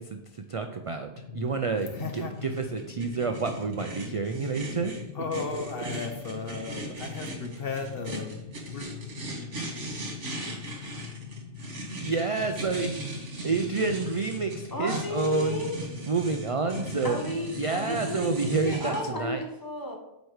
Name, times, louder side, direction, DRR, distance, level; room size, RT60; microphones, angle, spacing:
voice 1, 0.0-4.9 5.5-5.8 12.0-13.1 13.4-15.6 16.1-17.2 17.6-19.4, right 4 dB, 50° right, 6 dB, 0.4 m, -29 dB
sound 1, 1.2-18.8, left 7 dB, 85° left, 1.2 m, -43 dB
sound 2, 1.8-19.0, right 2 dB, 90° right, 2.2 m, -38 dB
voice 2, 1.9-2.3 5.1-8.4 8.7-8.9, left 4 dB, 55° left, 6 dB, 1.0 m, -35 dB
voice 3, 14.7-15.8 17.0-20.0, left 1 dB, 20° left, 2 dB, 1.2 m, -33 dB
8.0 x 4.7 x 6.4 m, 0.95 s
omnidirectional pair, 1.2 m